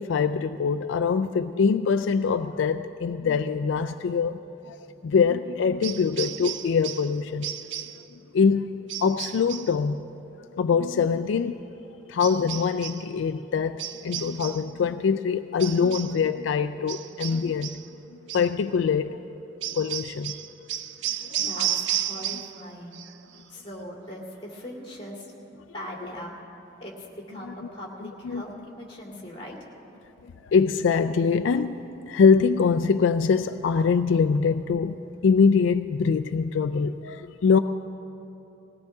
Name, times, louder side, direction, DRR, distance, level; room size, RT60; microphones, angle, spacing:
voice 1, 0.0-4.4 4.7-4.8 5.0-7.5 8.3-8.7 9.0-10.1 10.5-11.6 12.1-17.8 18.3-19.2 19.7-20.4 21.2-21.5 28.2-28.4 30.2-31.8 32.1-35.0 35.2-37.6, left 5 dB, 80° left, 9 dB, 0.3 m, -23 dB
voice 2, 4.8-5.1 21.0-23.0 23.5-25.3 25.7-26.4 26.8-29.6, equal, 30° left, -3 dB, 2.5 m, -40 dB
sound 1, 5.8-7.1 7.4-8.0 8.9-9.8 12.2-13.1 13.8-14.7 15.6-16.2 16.9-17.9 18.3-18.5 19.6-22.6 22.9-23.4, right 11 dB, 70° right, 0.4 m, -33 dB
20.0 x 17.0 x 3.5 m, 2.9 s
head